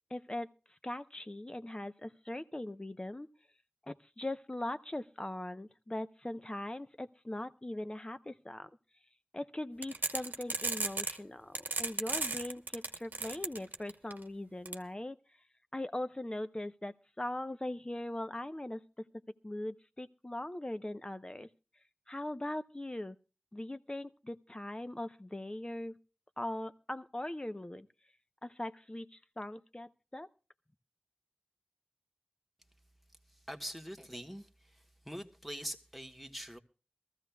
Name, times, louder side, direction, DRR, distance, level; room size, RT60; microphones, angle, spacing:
voice 1, 0.1-0.5 0.8-3.3 3.9-8.7 9.3-15.2 15.7-18.8 19.4-21.5 22.1-23.2 23.5-25.9 26.4-27.9 28.4-30.3, left 1 dB, 30° left, 0.7 m, -40 dB
sound 1, 9.8-11.2 11.6-14.1 14.7-14.8, right 3 dB, 90° right, 1.0 m, -34 dB
voice 2, 33.5-34.5 35.0-36.6, equal, ahead, 1.3 m, -43 dB
22.5 x 14.5 x 2.3 m
wide cardioid pair, 55°, 3 cm